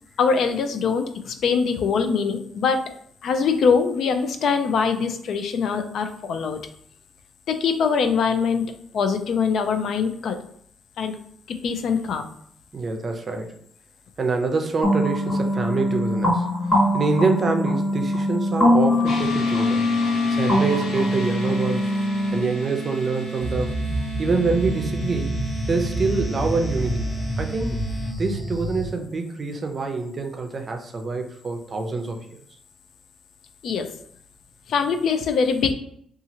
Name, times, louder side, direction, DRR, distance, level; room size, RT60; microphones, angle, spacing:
voice 1, 0.2-2.8 3.2-6.6 7.5-8.6 8.9-10.4 11.0-11.2 11.5-12.3 33.6-33.9 34.7-35.7, left 5 dB, 65° left, 7 dB, 0.4 m, -23 dB
voice 2, 12.7-13.5 14.2-16.5 16.9-19.8 20.3-22.0 22.3-23.8 24.2-27.0 27.4-27.8 28.2-32.4, right 4 dB, 40° right, 4 dB, 0.5 m, -26 dB
sound 1, 14.8-22.4, left 1 dB, 35° left, 1.2 m, -22 dB
sound 2, 19.1-28.1, right 3 dB, 85° left, 0.8 m, -34 dB
sound 3, 23.4-28.9, equal, 15° left, 0.8 m, -28 dB
2.8 x 2.4 x 2.7 m, 0.65 s
cardioid pair, 90°, 0 cm